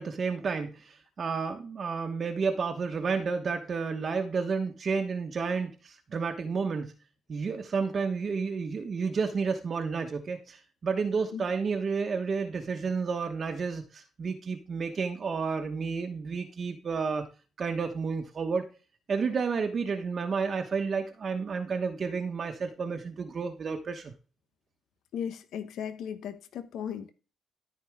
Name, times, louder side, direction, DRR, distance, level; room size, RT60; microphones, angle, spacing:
voice 1, 0.0-6.9 7.3-17.3 17.6-18.7 19.1-24.1, right 5 dB, 45° right, 1.1 m, -31 dB
voice 2, 25.1-27.1, left 8 dB, 75° left, 0.9 m, -36 dB
13.5 x 4.5 x 3.6 m
cardioid pair, 90°, 0 cm